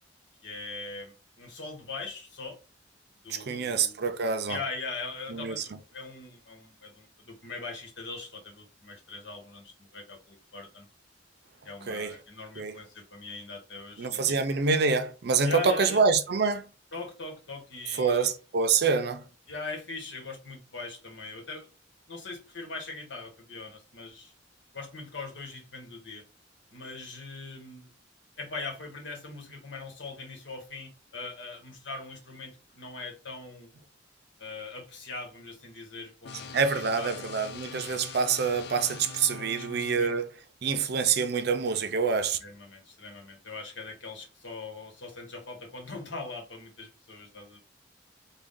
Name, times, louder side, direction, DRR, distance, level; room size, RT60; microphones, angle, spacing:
voice 1, 0.4-2.6 3.2-4.0 4.5-10.9 11.6-14.4 15.4-16.0 16.9-18.3 19.5-21.7 22.1-24.3 24.7-26.2 26.7-27.9 28.4-33.7 34.4-37.3 39.3-40.1 42.4-47.6, left 3 dB, 75° left, 1.4 m, -41 dB
voice 2, 3.3-4.6 5.3-5.6 11.9-12.2 12.6-12.8 14.0-16.7 18.0-19.2 36.5-40.3 40.6-42.4, right 5 dB, 60° right, 0.5 m, -26 dB
sound 1, 36.2-40.2, left 5 dB, 60° left, 0.4 m, -43 dB
3.6 x 2.3 x 3.6 m
head